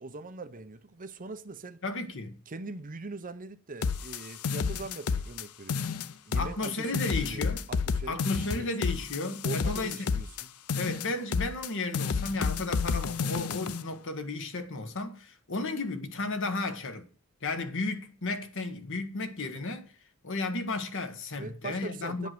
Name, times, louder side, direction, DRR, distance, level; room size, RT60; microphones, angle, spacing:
voice 1, 0.0-1.8 2.5-5.9 6.2-8.9 9.4-10.5 21.4-22.3, right 3 dB, 40° right, 0.8 m, -42 dB
voice 2, 1.8-2.4 6.3-7.6 8.1-10.2 10.7-17.1 17.4-19.9 20.2-22.3, left 3 dB, 60° left, 1.3 m, -34 dB
sound 1, 3.8-5.4 5.7-6.7 6.9-10.4 10.7-11.7 11.9-13.8, left 5 dB, 80° left, 0.5 m, -30 dB
9.4 x 5.4 x 7.7 m
head